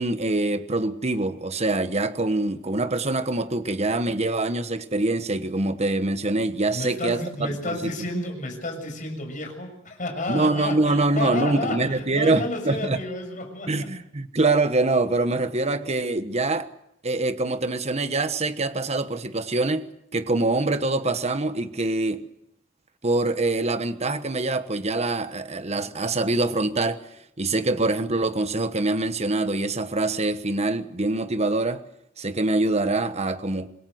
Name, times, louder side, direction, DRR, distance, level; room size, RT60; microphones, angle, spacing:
voice 1, 0.0-7.8 10.3-13.0 13.7-16.7 17.0-22.2 23.0-27.0 27.4-31.8 32.2-33.7, right 2 dB, 35° right, 1.2 m, -24 dB
voice 2, 6.7-13.9, left 2 dB, 45° left, 6.6 m, -31 dB
26.0 x 21.5 x 7.8 m
head